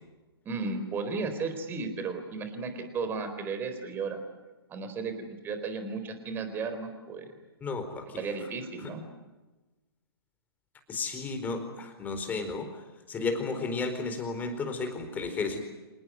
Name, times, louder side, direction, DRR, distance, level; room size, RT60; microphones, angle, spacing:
voice 1, 0.4-4.2 4.7-7.3 8.2-9.0, right 4 dB, 15° right, 8 dB, 4.1 m, -34 dB
voice 2, 7.6-8.2 8.8-8.9 10.9-15.6, left 4 dB, 15° left, 6 dB, 4.4 m, -33 dB
27.5 x 18.5 x 9.7 m, 1.2 s
figure-of-eight pair, 130°, 13 cm